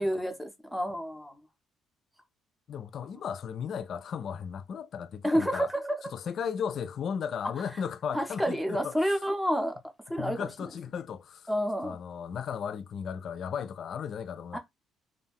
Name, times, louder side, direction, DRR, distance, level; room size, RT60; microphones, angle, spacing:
voice 1, 0.0-1.4 5.2-6.0 8.1-9.7 10.1-10.5 11.5-12.0 14.5-14.6, equal, ahead, 0.6 m, -29 dB
voice 2, 2.7-5.7 6.1-9.0 10.2-11.5 11.8-14.6, left 7 dB, 55° left, 0.3 m, -35 dB
2.5 x 2.1 x 3.3 m
cardioid pair, 110°, 0 cm